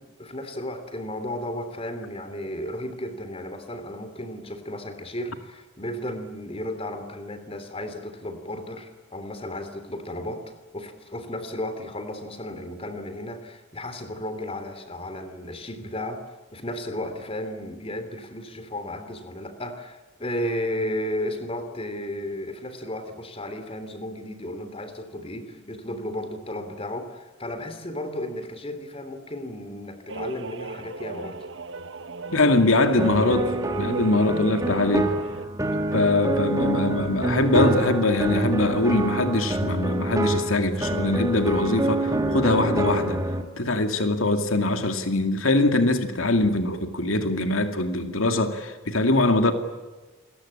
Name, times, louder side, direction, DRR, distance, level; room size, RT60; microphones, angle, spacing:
voice 1, 0.0-10.4 10.7-16.2 16.5-31.4, left 1 dB, 30° left, 9 dB, 3.2 m, -34 dB
sound 1, 30.1-35.5, right 3 dB, 60° right, 1.3 m, -35 dB
voice 2, 32.3-35.1 35.9-43.2 43.6-49.5, left 2 dB, 80° left, 7 dB, 2.3 m, -22 dB
sound 2, 33.0-43.4, right 1 dB, 15° right, 2.9 m, -26 dB
28.5 x 22.0 x 8.7 m, 1.3 s
head